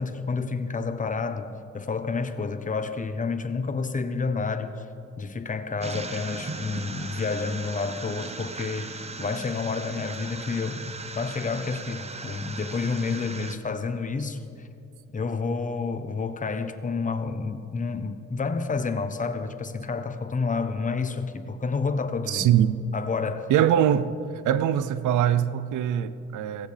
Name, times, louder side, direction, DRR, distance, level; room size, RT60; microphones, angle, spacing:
voice 1, 0.0-1.5 1.7-4.9 5.2-14.7 15.1-22.5 22.9-23.5, left 4 dB, 25° left, 0.9 m, -29 dB
sound 1, 5.8-13.6, right 4 dB, 20° right, 0.7 m, -38 dB
voice 2, 22.3-22.8 23.5-24.1 24.4-26.7, right 10 dB, 80° right, 0.6 m, -22 dB
16.5 x 15.5 x 3.4 m
cardioid pair, 90°, 30 cm